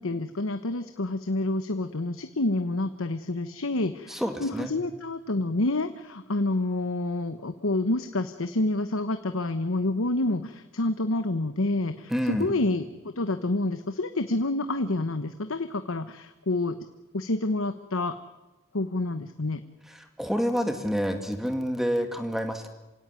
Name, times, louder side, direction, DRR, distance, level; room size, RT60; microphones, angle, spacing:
voice 1, 0.0-12.8 13.2-16.8 17.1-18.2 18.7-19.6, left 2 dB, 80° left, 9 dB, 1.1 m, -28 dB
voice 2, 4.1-4.7 12.1-12.5 19.9-22.7, equal, ahead, 6 dB, 2.2 m, -28 dB
27.5 x 17.0 x 9.6 m, 1.1 s
head